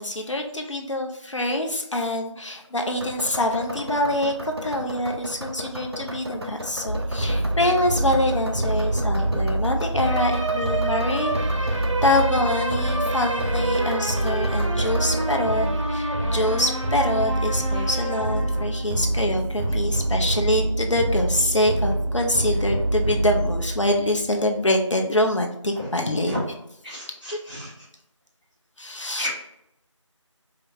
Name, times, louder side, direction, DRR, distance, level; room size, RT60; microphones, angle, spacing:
voice 1, 0.0-11.3 12.0-26.4 28.8-29.3, left 1 dB, 70° left, 3 dB, 0.7 m, -25 dB
sound 1, 2.9-15.4, equal, 50° right, 0.5 m, -35 dB
sound 2, 6.9-24.5, right 1 dB, 75° right, 0.8 m, -25 dB
voice 2, 26.8-27.7 29.2-29.3, left 1 dB, 15° right, -13 dB, 1.3 m, -33 dB
5.0 x 2.2 x 3.0 m, 0.78 s
figure-of-eight pair, 175°, 16 cm